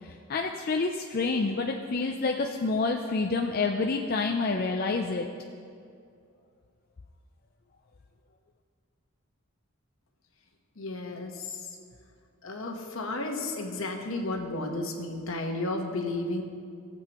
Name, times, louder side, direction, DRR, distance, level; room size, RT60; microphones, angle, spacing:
voice 1, 0.0-5.3, left 3 dB, 45° left, 2 dB, 0.4 m, -28 dB
voice 2, 10.8-11.8 12.4-16.4, left 2 dB, 70° left, 3 dB, 1.2 m, -33 dB
17.0 x 7.8 x 3.0 m, 2.3 s
head